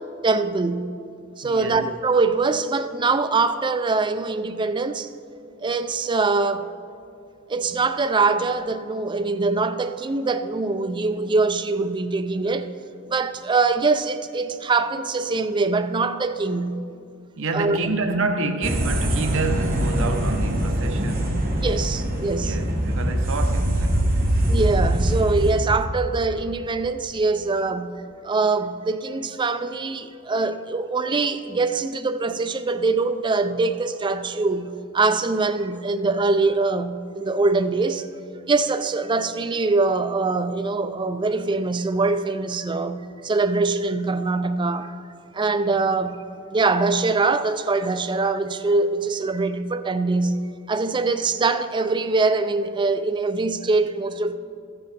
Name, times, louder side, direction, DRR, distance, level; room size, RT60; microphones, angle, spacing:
voice 1, 0.2-0.9 1.4-5.1 5.6-6.7 7.5-12.7 13.1-16.8 17.5-17.8 21.6-22.6 24.5-38.1 38.5-44.9 45.3-46.2 46.5-54.4, right 3 dB, 20° right, 0.4 m, -23 dB
voice 2, 1.4-1.8 17.4-21.4 22.4-24.3, right 3 dB, 65° right, 0.8 m, -28 dB
sound 1, 18.6-25.5, equal, 45° right, 1.6 m, -23 dB
13.5 x 9.8 x 4.1 m
head